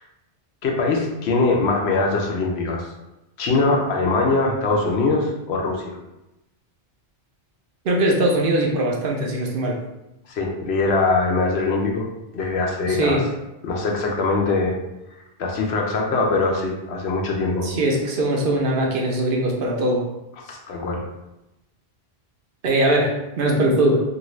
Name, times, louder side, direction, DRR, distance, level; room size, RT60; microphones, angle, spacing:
voice 1, 0.6-2.9 3.4-6.0 10.3-12.1 12.3-13.2 13.6-14.8 15.4-17.7 20.5-21.0, left 3 dB, 80° left, 0 dB, 0.9 m, -22 dB
voice 2, 7.8-9.8 12.8-13.2 17.6-20.0 22.6-24.0, right 1 dB, 65° right, -1 dB, 0.7 m, -21 dB
2.6 x 2.5 x 3.1 m, 0.94 s
omnidirectional pair, 1.1 m